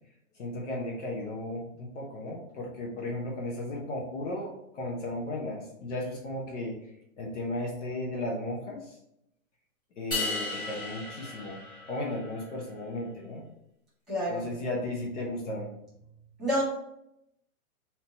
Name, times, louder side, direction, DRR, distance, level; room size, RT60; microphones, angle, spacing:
voice 1, 0.4-6.7 7.2-8.9 10.0-11.6 11.9-13.5 14.3-15.7, left 1 dB, 55° left, -2 dB, 1.1 m, -35 dB
sound 1, 10.1-12.4, left 2 dB, 15° left, 0.6 m, -35 dB
voice 2, 14.1-14.5 16.4-16.6, equal, ahead, -8 dB, 1.6 m, -28 dB
3.6 x 2.9 x 4.4 m, 0.80 s
hypercardioid pair, 170°, 43 cm